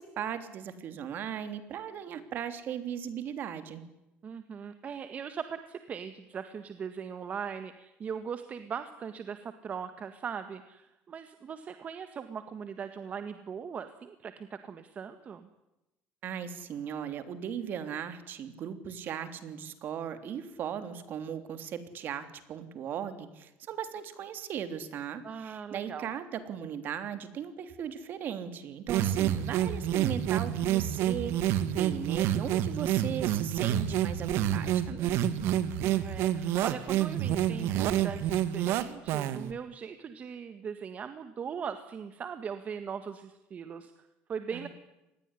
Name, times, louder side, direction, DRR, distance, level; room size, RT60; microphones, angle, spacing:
voice 1, 0.0-3.8 16.2-35.2 44.5-44.7, right 8 dB, 50° right, 10 dB, 3.3 m, -38 dB
voice 2, 4.2-15.5 25.2-26.1 35.8-44.7, right 7 dB, 35° right, 9 dB, 1.7 m, -40 dB
sound 1, 28.9-39.5, right 11 dB, 70° right, 2.2 m, -28 dB
26.5 x 20.5 x 10.0 m, 0.93 s
cardioid pair, 140°, 4 cm